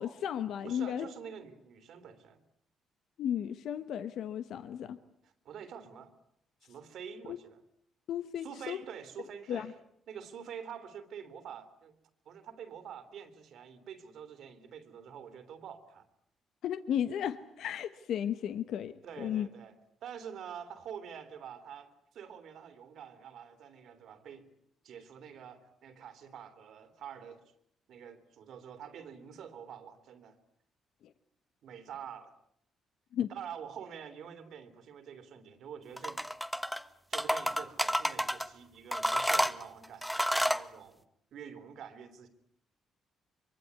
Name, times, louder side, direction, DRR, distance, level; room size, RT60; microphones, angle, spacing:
voice 1, 0.0-1.1 3.2-5.0 7.3-7.4 8.1-8.8 9.5-9.7 16.6-19.5 33.1-33.3, left 9 dB, 75° left, 12 dB, 1.1 m, -34 dB
voice 2, 0.6-2.4 5.2-6.1 6.6-7.6 8.4-9.7 10.1-11.9 12.2-16.0 19.0-19.7 20.0-24.5 24.8-27.5 27.9-30.4 31.6-32.3 33.3-36.2 37.1-41.0 41.3-42.3, right 8 dB, 70° right, 11 dB, 3.1 m, -47 dB
sound 1, 36.0-36.8 37.1-38.5 38.9-40.6, equal, ahead, 1.1 m, -30 dB
24.0 x 23.5 x 9.5 m, 0.72 s
cardioid pair, 90°, 0 cm